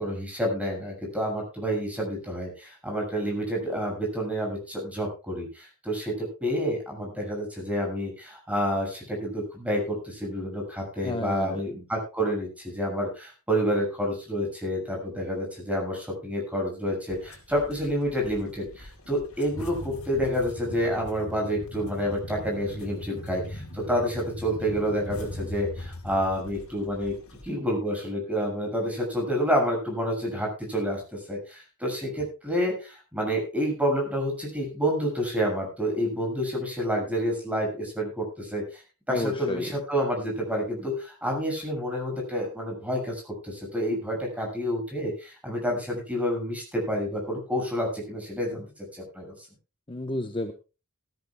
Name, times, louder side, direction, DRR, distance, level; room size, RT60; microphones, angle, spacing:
voice 1, 0.0-27.1 27.4-38.8 39.1-48.6 48.9-49.3, equal, 5° right, 1 dB, 6.5 m, -29 dB
voice 2, 11.0-11.6 39.1-39.7 49.9-50.5, left 1 dB, 25° left, 6 dB, 1.0 m, -31 dB
sound 1, 17.1-27.5, left 1 dB, 70° left, 3.7 m, -40 dB
19.0 x 14.0 x 2.3 m, 0.32 s
head